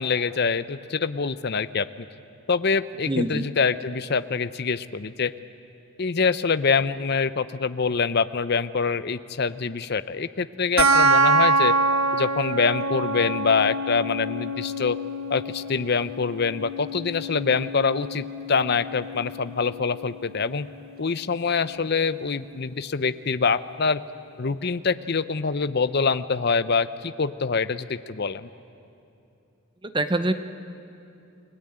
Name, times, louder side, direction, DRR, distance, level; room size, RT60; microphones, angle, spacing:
voice 1, 0.0-1.9 2.5-5.3 6.0-11.7 12.1-15.0 15.3-20.7 21.0-24.0 24.4-28.5, left 5 dB, 50° left, 14 dB, 0.6 m, -25 dB
voice 2, 3.1-3.5 29.9-30.3, right 1 dB, 20° right, 10 dB, 0.8 m, -24 dB
sound 1, 10.8-21.8, right 2 dB, 75° right, 1.1 m, -26 dB
29.5 x 20.5 x 8.8 m, 2.7 s
head